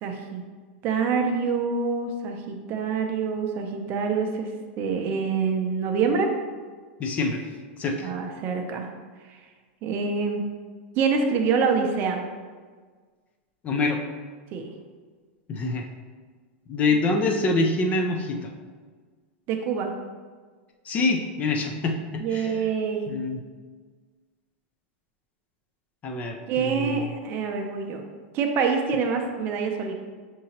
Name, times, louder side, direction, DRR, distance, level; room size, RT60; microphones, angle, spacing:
voice 1, 0.0-0.4 0.8-4.5 4.8-6.3 8.0-8.9 9.3-9.4 9.8-10.4 11.0-12.2 14.5-14.7 19.5-19.9 22.2-23.1 26.5-28.0 28.3-29.9, right 5 dB, 35° right, 4 dB, 0.5 m, -26 dB
voice 2, 7.0-7.5 7.8-8.1 13.6-14.0 15.5-15.9 16.7-18.5 20.9-22.6 23.1-23.4 26.0-27.0, left 3 dB, 25° left, 3 dB, 0.4 m, -25 dB
6.2 x 2.9 x 2.8 m, 1.5 s
supercardioid pair, 150°, 6 cm